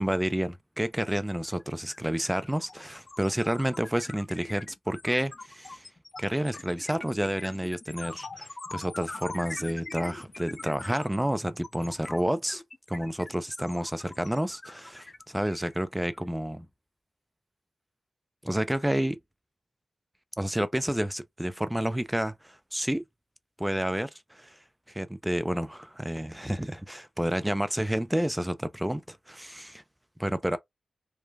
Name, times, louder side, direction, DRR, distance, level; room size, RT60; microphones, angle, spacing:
voice 1, 0.0-5.9 6.2-12.6 12.9-16.7 18.4-19.2 20.4-23.0 23.6-24.6 24.9-29.8 30.2-30.6, equal, 5° right, 0.3 m, -30 dB
sound 1, 1.4-1.6 1.9-16.2, left 3 dB, 40° left, 0.7 m, -43 dB
3.1 x 2.1 x 2.3 m
cardioid pair, 70°, 0 cm